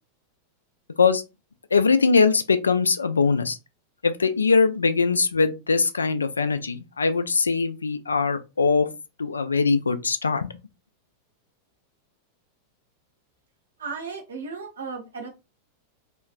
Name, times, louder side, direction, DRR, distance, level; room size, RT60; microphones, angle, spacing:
voice 1, 1.7-3.6 4.0-8.9 9.2-10.5, left 4 dB, 75° left, 0.3 m, -21 dB
voice 2, 13.8-15.3, right 5 dB, 70° right, 0.9 m, -35 dB
2.9 x 2.3 x 2.5 m
figure-of-eight pair, 90°, 0 cm